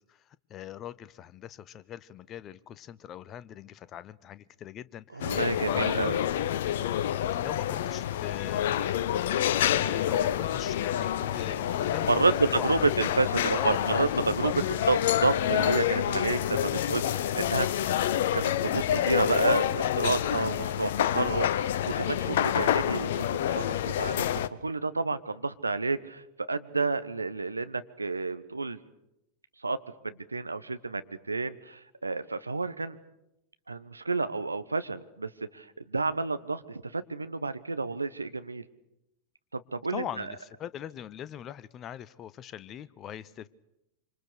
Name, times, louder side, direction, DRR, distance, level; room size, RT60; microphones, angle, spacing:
voice 1, 0.1-6.1 7.3-9.6 9.9-12.9 13.2-14.1 14.4-14.8 39.9-43.5, left 10 dB, 30° left, 17 dB, 0.9 m, -42 dB
voice 2, 5.1-6.2 12.1-14.5 14.9-17.7 18.3-28.8 29.6-29.8 30.0-33.0 33.7-38.6 39.5-40.3, right 3 dB, 80° right, 12 dB, 1.1 m, -30 dB
sound 1, 5.2-24.5, left 11 dB, 55° left, 0.8 m, -28 dB
26.5 x 26.0 x 6.6 m, 0.87 s
figure-of-eight pair, 90°, 0 cm